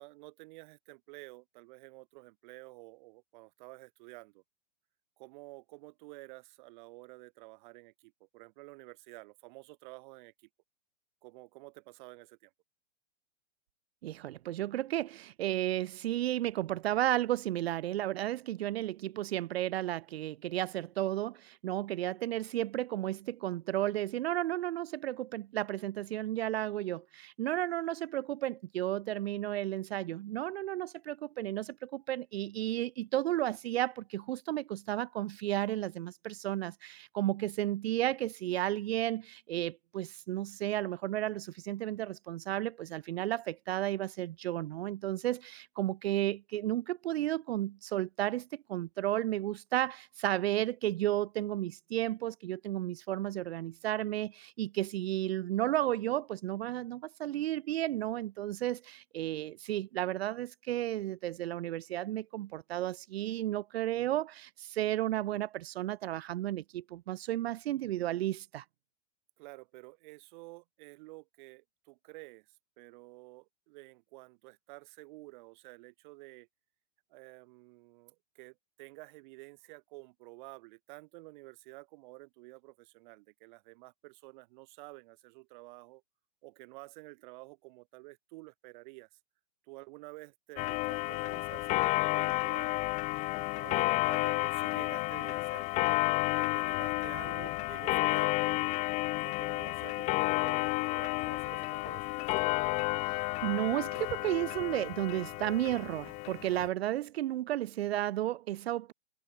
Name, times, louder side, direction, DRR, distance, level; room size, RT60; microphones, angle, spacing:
voice 1, 0.0-4.4 5.2-10.5 11.2-12.5 69.4-76.5 77.1-86.0 86.4-89.1 89.7-92.8 93.4-95.9 96.3-98.8 99.2-102.1, right 23 dB, 40° right, 3.2 m, -51 dB
voice 2, 14.0-68.6 103.4-108.9, right 14 dB, 60° right, 0.8 m, -33 dB
Clock, 90.6-106.7, left 23 dB, 20° left, 0.5 m, -31 dB
hypercardioid pair, 140°, 35 cm